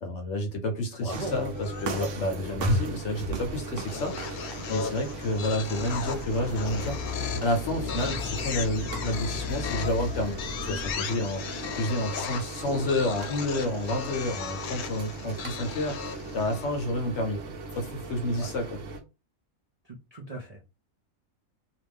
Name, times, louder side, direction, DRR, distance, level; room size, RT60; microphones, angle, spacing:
voice 1, 0.0-7.0 7.4-11.4 11.8-18.6, left 1 dB, 60° left, 0.9 m, -30 dB
voice 2, 1.0-1.3 18.4-18.5 19.8-20.6, right 1 dB, 50° right, 0.5 m, -38 dB
sound 1, 1.1-19.0, right 1 dB, 65° right, 1.0 m, -36 dB
sound 2, 1.5-2.3 3.9-16.8, left 6 dB, 85° left, 1.1 m, -37 dB
sound 3, 5.7-10.9, left 5 dB, 10° right, 1.3 m, -37 dB
2.7 x 2.5 x 3.4 m
omnidirectional pair, 1.5 m